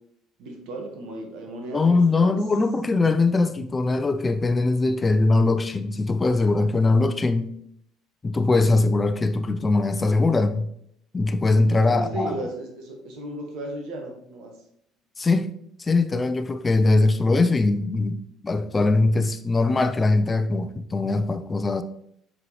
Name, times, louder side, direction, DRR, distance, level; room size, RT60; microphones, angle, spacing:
voice 1, 0.4-2.4 11.8-14.5, right 1 dB, 70° right, 1.5 m, -35 dB
voice 2, 1.7-7.5 8.2-10.7 11.1-12.4 15.2-15.5 15.8-21.8, left 3 dB, 25° left, 0.6 m, -21 dB
6.3 x 4.7 x 3.2 m
hypercardioid pair, 70°, 0 cm